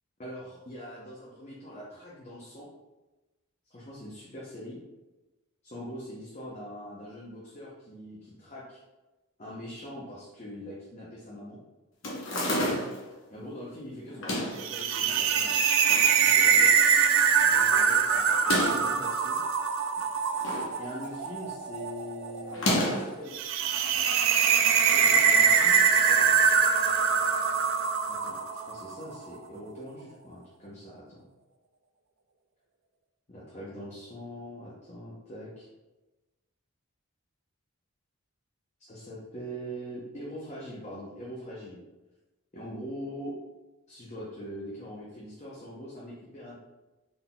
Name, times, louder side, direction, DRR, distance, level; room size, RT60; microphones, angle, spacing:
voice 1, 0.2-2.7 3.7-4.8 5.6-8.8 9.4-11.6 13.3-15.6 16.2-16.9 17.4-19.4 20.7-23.4 24.9-26.3 28.1-31.2 33.3-35.7 38.8-41.8 42.5-43.4 43.9-46.6, equal, 30° left, -6 dB, 0.6 m, -42 dB
sound 1, 12.0-13.1 14.1-14.7 15.4-16.1 16.5-16.6 16.7-16.8 18.3-18.9 20.0-20.7 21.0-21.4 22.5-23.2, left 1 dB, 60° left, 0.9 m, -30 dB
sound 2, 14.6-28.9, right 6 dB, 60° right, 0.3 m, -24 dB
3.9 x 3.8 x 2.2 m, 1.1 s
head